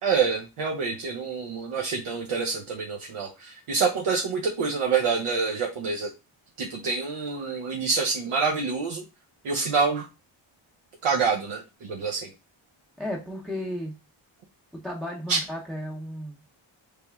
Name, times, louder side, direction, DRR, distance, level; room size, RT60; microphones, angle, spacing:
voice 1, 0.0-6.1 6.6-9.0 9.4-10.1 11.0-11.6 11.9-12.3 15.3-15.4, right 5 dB, 85° right, 2 dB, 0.7 m, -26 dB
voice 2, 13.0-13.9 14.7-16.4, equal, ahead, -1 dB, 0.6 m, -34 dB
3.3 x 2.9 x 3.4 m, 0.29 s
wide cardioid pair, 115°, 49 cm